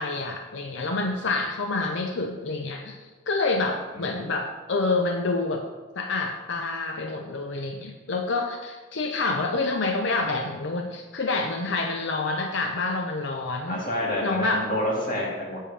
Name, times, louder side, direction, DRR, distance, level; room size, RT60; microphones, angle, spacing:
voice 1, 0.0-5.6 6.0-13.8 14.2-14.6, left 3 dB, 60° left, 3 dB, 0.6 m, -28 dB
voice 2, 13.7-15.6, left 1 dB, 40° left, -4 dB, 2.2 m, -28 dB
9.9 x 7.4 x 3.3 m, 1.3 s
head